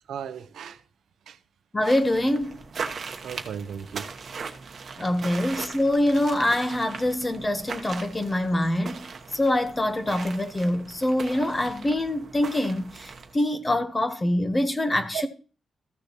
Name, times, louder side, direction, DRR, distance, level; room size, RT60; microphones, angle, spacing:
voice 1, 0.1-0.8 1.3-1.4 3.2-4.1 4.9-5.4 15.1-15.2, right 8 dB, 90° right, 0.6 m, -36 dB
voice 2, 1.7-2.6 5.0-9.1 9.3-15.3, left 1 dB, 15° left, 1.0 m, -25 dB
sound 1, 1.8-13.4, right 5 dB, 45° right, 1.1 m, -39 dB
14.5 x 6.7 x 2.9 m
wide cardioid pair, 155°, 0 cm